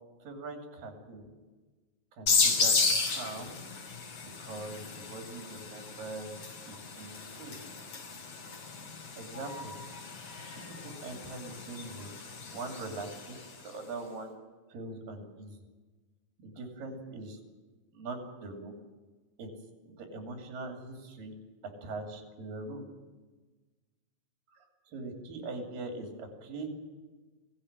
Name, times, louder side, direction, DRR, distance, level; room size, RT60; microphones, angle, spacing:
voice 1, 0.2-1.3 2.2-3.6 4.4-6.3 6.7-7.5 9.2-9.7 10.5-12.2 12.5-13.4 13.6-14.3 14.7-15.6 16.4-17.4 17.9-18.7 19.4-19.5 19.8-21.3 21.8-22.9 24.5-26.7, right 2 dB, 75° right, 3 dB, 4.5 m, -42 dB
sound 1, 2.3-13.6, left 4 dB, 55° left, 4.5 m, -33 dB
21.5 x 16.0 x 9.7 m, 1.3 s
omnidirectional pair, 4.0 m